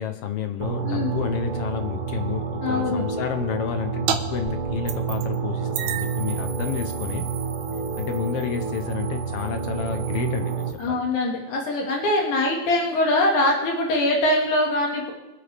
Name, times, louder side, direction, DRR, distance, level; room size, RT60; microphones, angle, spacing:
voice 1, 0.0-7.2 8.0-11.1, left 8 dB, 65° left, 7 dB, 1.7 m, -30 dB
sound 1, 0.6-10.7, right 5 dB, 60° right, 2.2 m, -29 dB
voice 2, 2.6-3.0 10.8-15.1, left 1 dB, 85° left, -1 dB, 3.5 m, -23 dB
sound 2, 4.1-4.2 4.5-5.4 5.7-10.8, right 8 dB, 85° right, 2.3 m, -34 dB
24.0 x 8.1 x 3.5 m, 0.97 s
omnidirectional pair, 3.4 m